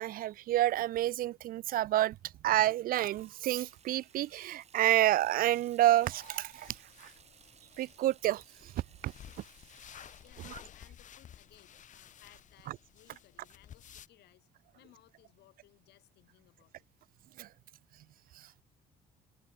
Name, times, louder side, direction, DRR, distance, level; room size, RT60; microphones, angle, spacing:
voice 1, 0.0-2.2 2.4-7.1 7.8-9.1 17.4-17.5 18.4-18.5, right 14 dB, 60° right, 0.4 m, -29 dB
Water tap faucet / Sink (filling or washing), 2.9-12.2, right 8 dB, 40° right, 1.3 m, -62 dB
sound 1, 6.0-14.1, left 9 dB, 50° left, 1.2 m, -54 dB
voice 2, 10.2-16.9, left 16 dB, 80° left, 7.0 m, -63 dB
cardioid pair, 110°, 17 cm